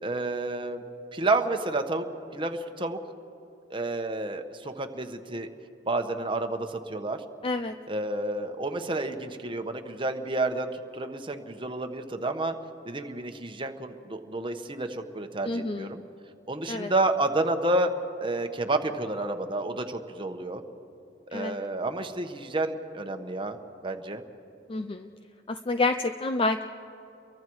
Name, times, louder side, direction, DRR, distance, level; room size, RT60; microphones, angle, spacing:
voice 1, 0.0-0.8 1.1-2.1 2.3-3.0 3.7-5.5 5.9-7.2 7.9-12.5 12.8-16.0 16.5-17.9 18.2-20.6 21.3-23.6 23.8-24.2, right 2 dB, 30° right, 6 dB, 1.2 m, -30 dB
voice 2, 7.4-7.7 15.5-15.9 16.7-16.9 21.3-21.5 24.7-25.1 25.5-26.7, left 3 dB, 30° left, 8 dB, 0.5 m, -28 dB
29.5 x 23.5 x 4.7 m, 2.8 s
head